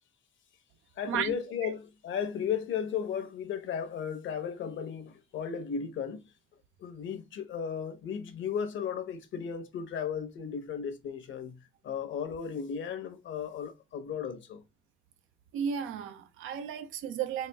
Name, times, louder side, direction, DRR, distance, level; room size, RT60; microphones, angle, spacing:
voice 1, 1.0-6.2 6.8-11.5 11.8-14.6, left 7 dB, 75° left, 0.9 m, -35 dB
voice 2, 15.5-17.5, right 8 dB, 90° right, 0.6 m, -34 dB
4.1 x 2.5 x 3.4 m
cardioid pair, 90°, 20 cm